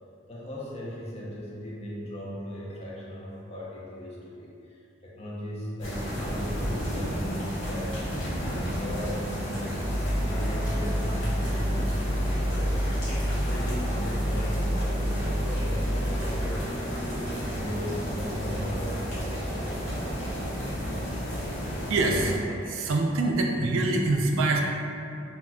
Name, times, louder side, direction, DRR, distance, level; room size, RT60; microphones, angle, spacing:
voice 1, 0.3-8.0 8.4-9.9 10.2-17.1 17.5-20.0 20.8-21.0, equal, 30° left, -5 dB, 0.5 m, -38 dB
sound 1, 5.8-22.4, equal, 70° left, 0.9 m, -32 dB
sound 2, 9.8-16.6, equal, 25° right, 0.8 m, -28 dB
voice 2, 21.9-24.6, right 2 dB, 85° right, 1 dB, 0.3 m, -25 dB
2.2 x 2.1 x 3.6 m, 2.6 s
head